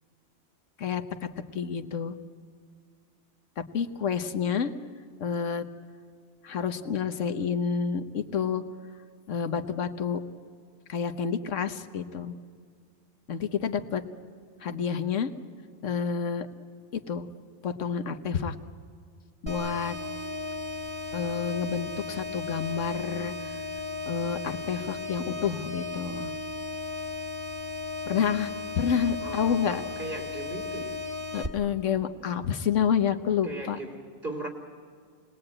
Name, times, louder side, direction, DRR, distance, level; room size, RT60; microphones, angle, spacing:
voice 1, 0.8-2.1 3.7-4.7 5.2-5.6 6.4-8.6 9.3-10.2 10.9-12.3 13.3-14.0 14.6-15.3 15.8-16.5 17.1-17.3 17.6-18.6 19.4-20.0 21.1-23.5 24.1-26.3 28.1-28.5 28.8-29.8 31.3-33.8, left 7 dB, 80° left, 1.5 m, -29 dB
sound 1, 19.5-31.5, left 3 dB, 20° right, 1.8 m, -35 dB
voice 2, 29.2-31.0 33.4-34.5, right 2 dB, 50° right, 3.3 m, -38 dB
28.0 x 20.5 x 8.9 m
omnidirectional pair, 1.3 m